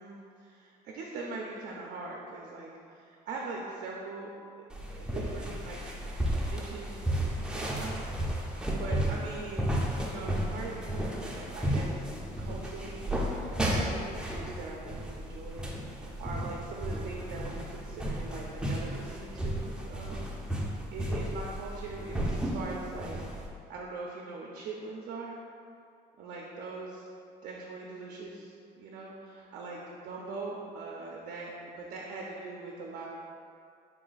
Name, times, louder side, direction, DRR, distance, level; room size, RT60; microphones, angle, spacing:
voice 1, 0.0-4.3 4.6-4.7 4.9-5.9 6.3-12.0 12.4-20.3 20.9-23.2 23.7-25.4 26.2-27.1 27.4-33.1, right 3 dB, 70° right, -2 dB, 0.5 m, -42 dB
sound 1, 4.7-23.5, equal, 5° right, 0.5 m, -33 dB
3.6 x 2.3 x 3.9 m, 2.4 s
cardioid pair, 110°, 17 cm